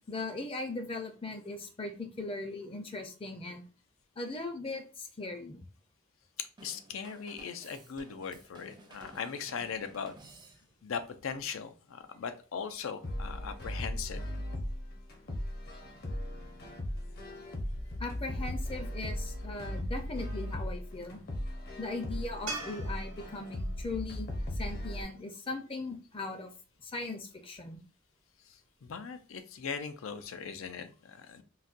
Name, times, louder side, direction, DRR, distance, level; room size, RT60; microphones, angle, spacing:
voice 1, 0.1-3.6 4.2-5.6 18.0-21.2 21.8-26.5 26.8-27.8, left 2 dB, 30° left, 5 dB, 0.5 m, -39 dB
voice 2, 6.4-10.2 10.8-14.2 28.5-31.4, left 6 dB, 90° left, 10 dB, 0.4 m, -39 dB
Drum kit / Drum, 6.6-10.9, right 2 dB, 25° right, 0.4 m, -55 dB
sound 1, 13.0-25.0, left 1 dB, 50° left, 0.8 m, -37 dB
sound 2, 22.5-25.7 29.0-29.1, right 3 dB, 70° right, 0.8 m, -44 dB
4.0 x 2.2 x 2.4 m, 0.36 s
head